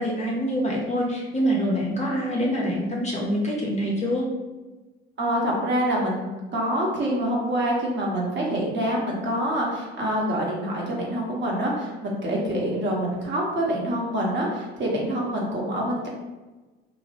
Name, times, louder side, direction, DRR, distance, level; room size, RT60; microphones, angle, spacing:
voice 1, 0.0-4.3, equal, 20° left, -3 dB, 0.6 m, -25 dB
voice 2, 5.2-16.1, equal, 35° right, -3 dB, 0.8 m, -26 dB
2.8 x 2.0 x 2.7 m, 1.2 s
figure-of-eight pair, 60°, 32 cm